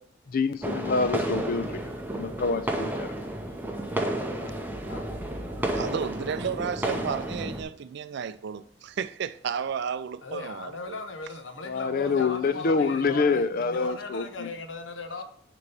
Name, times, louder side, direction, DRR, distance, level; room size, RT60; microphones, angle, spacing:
voice 1, 0.3-1.8 2.1-3.2 4.4-4.6 11.6-14.5, left 4 dB, 50° left, 0.5 m, -27 dB
sound 1, 0.6-7.6, right 1 dB, 10° right, 0.7 m, -31 dB
voice 2, 5.7-11.0, right 7 dB, 65° right, 0.4 m, -33 dB
voice 3, 10.2-15.2, left 3 dB, 70° left, 0.9 m, -38 dB
6.7 x 3.0 x 5.2 m
head